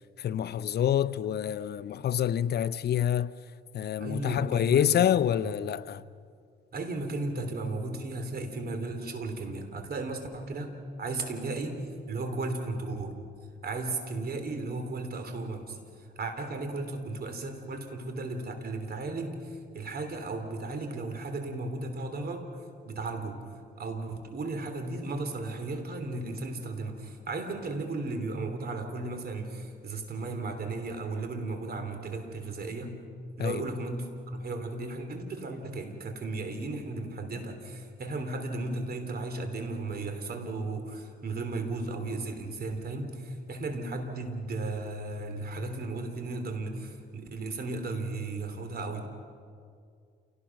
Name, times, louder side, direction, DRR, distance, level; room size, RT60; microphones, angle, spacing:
voice 1, 0.2-3.3 3.7-6.0 33.4-33.6, left 10 dB, 55° left, 0.7 m, -27 dB
voice 2, 4.0-5.0 5.4-5.5 6.7-11.8 12.1-13.1 13.6-22.5 22.8-33.0 33.4-49.1, right 2 dB, 50° right, 3.2 m, -35 dB
28.5 x 18.5 x 6.0 m
cardioid pair, 90°, 20 cm